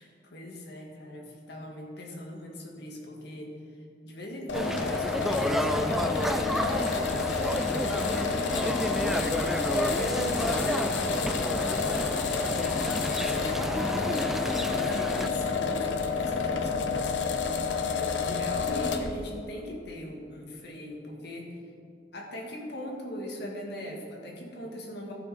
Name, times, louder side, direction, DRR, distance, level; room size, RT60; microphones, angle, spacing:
voice 1, 0.0-7.3 7.7-13.9 14.4-17.2 17.9-21.6 22.1-25.1, left 1 dB, 65° left, 0 dB, 1.8 m, -40 dB
sound 1, 4.5-19.1, left 5 dB, 85° left, 0.8 m, -29 dB
sound 2, 4.5-15.3, equal, ahead, 0.3 m, -31 dB
14.0 x 6.4 x 5.0 m, 2.4 s
head